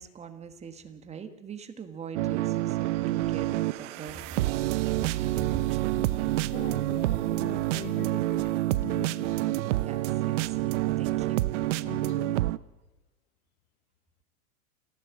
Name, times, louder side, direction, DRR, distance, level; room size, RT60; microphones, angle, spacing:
voice 1, 0.0-4.2 5.1-6.3 9.7-11.5, right 6 dB, 15° right, 1.4 m, -43 dB
sound 1, 2.1-12.6, right 17 dB, 55° right, 0.8 m, -28 dB
voice 2, 5.9-9.8 11.8-12.5, left 15 dB, 75° left, 1.3 m, -43 dB
28.5 x 15.5 x 8.1 m
supercardioid pair, 155°, 43 cm